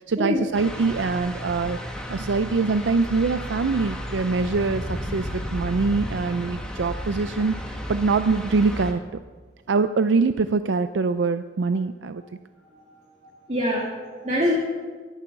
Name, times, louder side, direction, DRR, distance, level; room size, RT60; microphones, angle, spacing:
voice 1, 0.0-1.8 2.1-9.0 9.7-12.2, right 4 dB, 80° right, 11 dB, 0.5 m, -24 dB
sound 1, 0.5-8.9, equal, 5° left, 1.7 m, -33 dB
voice 2, 13.5-14.6, left 1 dB, 40° right, -3 dB, 2.1 m, -24 dB
14.0 x 11.0 x 6.5 m, 1.4 s
head